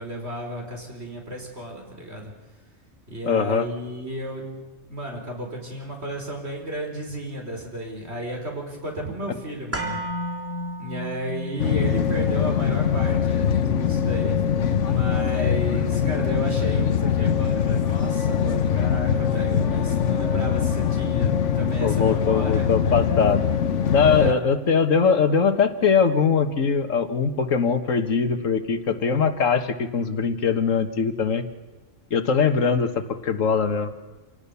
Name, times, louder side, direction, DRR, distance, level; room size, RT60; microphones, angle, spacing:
voice 1, 0.0-2.3 3.1-4.5 4.9-10.0 10.8-14.4 14.8-22.6 24.0-24.4, equal, 55° right, 1 dB, 5.1 m, -33 dB
voice 2, 3.3-3.7 21.8-23.5 23.9-31.4 32.1-33.9, left 5 dB, 85° left, 9 dB, 1.8 m, -21 dB
sound 1, 9.7-17.8 18.1-18.2, equal, 10° right, 3.1 m, -36 dB
sound 2, 11.6-24.3, left 8 dB, 70° left, 1.3 m, -22 dB
27.5 x 18.0 x 7.0 m, 1.2 s
omnidirectional pair, 1.3 m